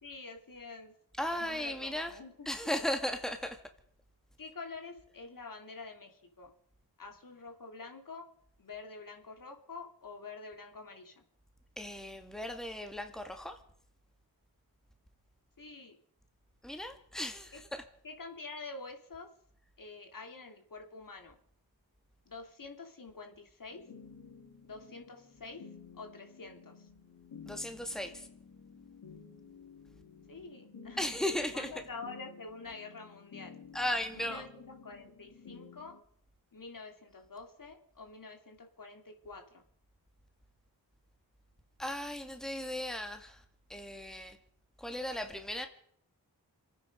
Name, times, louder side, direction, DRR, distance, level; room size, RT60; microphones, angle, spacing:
voice 1, 0.0-2.7 4.4-6.5 7.0-8.3 8.6-11.1 15.6-16.0 17.5-17.6 18.0-19.3 19.8-21.3 22.3-23.9 24.6-25.7 25.9-26.9 30.3-31.1 31.5-33.6 34.1-35.9 36.5-39.6, left 4 dB, 60° left, 2.7 m, -47 dB
voice 2, 1.2-2.2 2.5-3.6 11.8-13.6 16.6-17.8 27.4-28.3 31.0-31.7 33.7-34.5 41.8-43.4 43.7-44.4 44.8-45.7, left 1 dB, ahead, 2.3 m, -36 dB
sound 1, 23.7-36.0, left 5 dB, 80° left, 2.2 m, -53 dB
26.5 x 9.7 x 5.3 m
cardioid pair, 45°, 38 cm